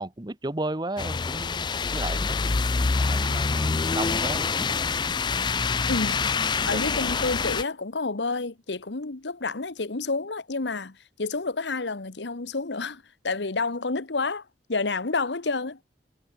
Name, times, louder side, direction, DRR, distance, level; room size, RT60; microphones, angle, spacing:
voice 1, 0.0-4.8 6.7-6.8, right 2 dB, 25° right, 1.0 m, -34 dB
sound 1, 1.0-7.6, left 4 dB, 25° left, 0.4 m, -26 dB
voice 2, 5.9-6.4 6.7-15.8, left 3 dB, 80° left, 1.3 m, -29 dB
head